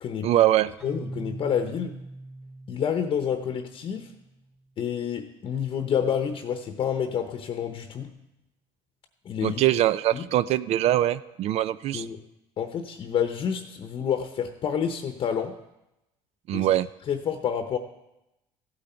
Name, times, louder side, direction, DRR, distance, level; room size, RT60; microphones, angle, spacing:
voice 1, 0.2-0.7 9.4-12.1 16.5-16.9, right 13 dB, 55° right, 16 dB, 0.4 m, -23 dB
voice 2, 0.8-1.9 2.7-4.1 4.8-8.1 9.2-9.6 10.1-10.2 11.9-12.2 12.6-15.6 16.5-16.7 17.1-17.8, left 8 dB, 45° left, 6 dB, 0.9 m, -28 dB
Keyboard (musical), 0.8-4.5, right 2 dB, 10° right, 1.8 m, -41 dB
15.5 x 9.0 x 4.4 m, 0.91 s
cardioid pair, 130°, 12 cm